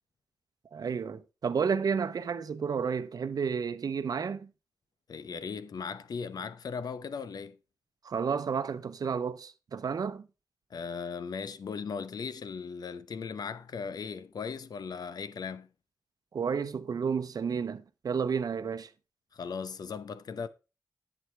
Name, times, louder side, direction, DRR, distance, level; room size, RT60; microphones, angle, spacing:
voice 1, 0.7-4.5 8.0-10.3 16.3-18.9, right 6 dB, 65° right, 0.8 m, -31 dB
voice 2, 5.1-7.6 10.7-15.7 19.3-20.5, left 5 dB, 70° left, 0.8 m, -38 dB
11.0 x 7.9 x 3.3 m
cardioid pair, 75°, 7 cm